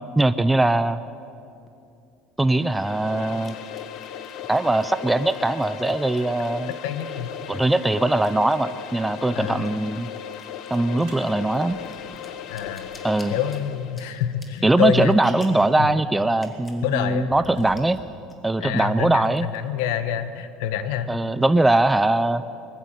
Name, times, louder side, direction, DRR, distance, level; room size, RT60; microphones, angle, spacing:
voice 1, 0.2-1.0 2.4-3.6 4.5-6.7 7.5-10.1 10.7-11.8 13.0-13.3 14.6-18.0 18.4-19.5 21.1-22.4, right 2 dB, 5° right, 12 dB, 0.4 m, -21 dB
sound 1, 1.7-1.8 3.4-7.4 7.7-9.3 9.5-15.7 16.3-16.9 17.1-17.2 17.4-18.0 18.3-18.8 19.2-20.1, left 2 dB, 15° left, 1.9 m, -49 dB
sound 2, 2.5-14.1, left 9 dB, 45° left, 1.0 m, -37 dB
voice 2, 6.8-7.3 9.3-9.7 12.5-12.9 13.3-15.2 15.8-15.9 16.8-17.3 18.6-21.1, left 10 dB, 85° left, 11 dB, 1.3 m, -27 dB
sound 3, 11.1-13.2 15.1-15.2 16.1-16.3 16.7-18.2, right 4 dB, 70° right, 4.7 m, -46 dB
20.5 x 14.5 x 9.1 m, 2.6 s
cardioid pair, 160°, 0 cm